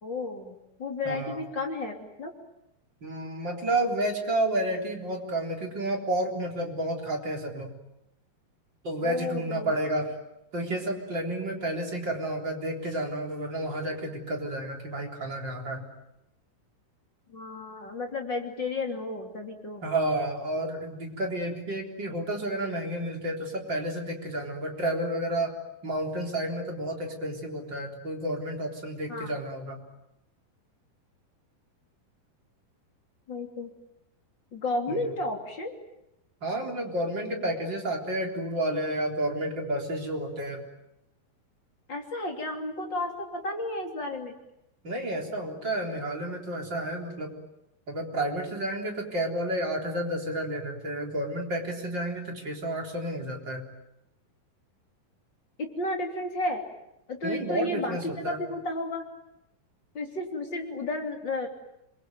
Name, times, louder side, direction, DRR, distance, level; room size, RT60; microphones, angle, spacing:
voice 1, 0.0-2.3 9.0-9.8 17.3-19.8 29.1-29.3 33.3-33.7 34.5-35.8 41.9-44.3 55.6-56.6 57.1-59.0 59.9-61.5, left 2 dB, 30° left, 3 dB, 3.2 m, -32 dB
voice 2, 1.1-1.4 3.0-7.7 8.8-10.1 10.5-15.8 19.8-25.5 25.8-29.8 34.9-35.1 36.4-40.6 44.8-47.3 47.9-53.6 57.2-58.4, right 1 dB, 30° right, 2 dB, 4.1 m, -31 dB
28.0 x 23.0 x 9.3 m, 0.85 s
omnidirectional pair, 4.5 m